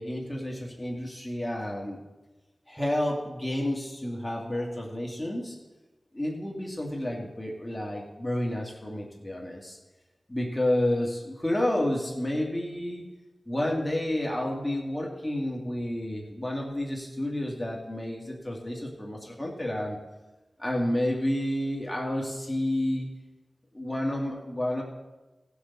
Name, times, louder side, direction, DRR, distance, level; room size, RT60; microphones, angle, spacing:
voice 1, 0.0-2.0 2.7-5.6 6.1-9.8 10.3-13.0 13.5-20.0 20.6-23.1 23.7-24.8, left 1 dB, 15° left, -1 dB, 1.9 m, -30 dB
18.5 x 6.3 x 4.1 m, 1.1 s
wide cardioid pair, 75°, 0 cm